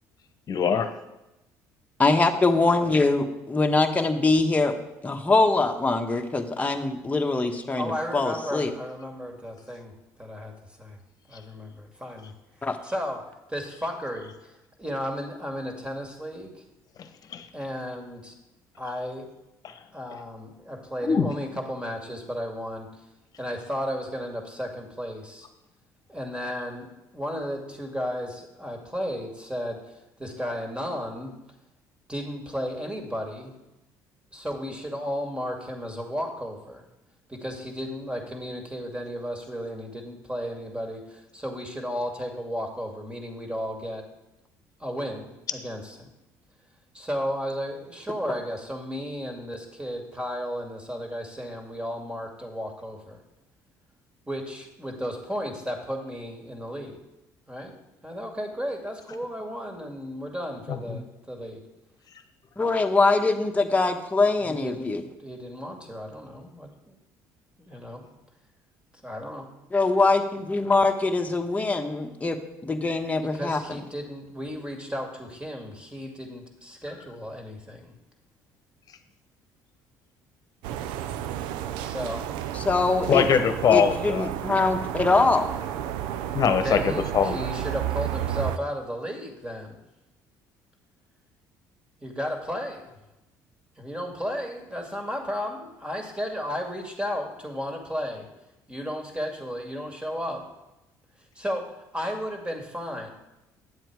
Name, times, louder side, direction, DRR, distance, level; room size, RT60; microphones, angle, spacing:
voice 1, 0.5-0.9 17.0-17.5 21.0-21.3 60.7-61.0 83.1-84.3 86.3-87.4, left 6 dB, 50° left, 9 dB, 1.1 m, -22 dB
voice 2, 2.0-4.7 5.0-8.7 12.6-12.8 62.6-65.0 69.7-73.6 82.5-83.2 83.7-85.5, left 3 dB, 20° left, 4 dB, 1.2 m, -23 dB
voice 3, 7.8-11.0 11.3-12.3 12.6-16.6 17.5-18.3 18.8-19.3 19.9-22.9 23.4-25.5 26.1-26.9 27.1-31.4 32.1-33.5 34.3-36.8 37.3-44.1 44.8-46.1 46.9-53.2 54.3-57.0 57.5-57.8 58.0-61.6 64.4-67.0 67.6-68.1 69.0-69.5 73.2-78.0 81.8-82.3 86.6-89.8 92.0-92.8 93.8-98.3 98.7-100.4 101.4-103.1, equal, 15° right, 2 dB, 2.2 m, -34 dB
sound 1, 80.6-88.6, right 11 dB, 80° right, 0.5 m, -32 dB
9.7 x 7.6 x 4.7 m, 0.94 s
supercardioid pair, 75°, 8 cm